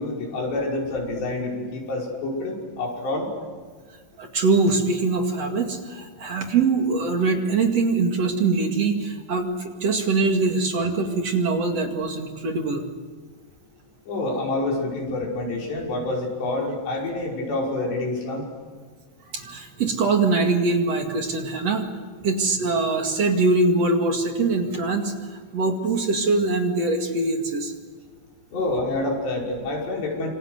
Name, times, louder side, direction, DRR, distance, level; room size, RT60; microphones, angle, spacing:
voice 1, 0.0-3.3 14.1-18.4 28.5-30.3, left 2 dB, 80° left, -2 dB, 7.7 m, -27 dB
voice 2, 4.2-12.9 19.3-21.8 22.2-27.7, right 3 dB, 45° right, 3 dB, 2.7 m, -23 dB
27.5 x 26.0 x 8.1 m, 1.5 s
omnidirectional pair, 4.9 m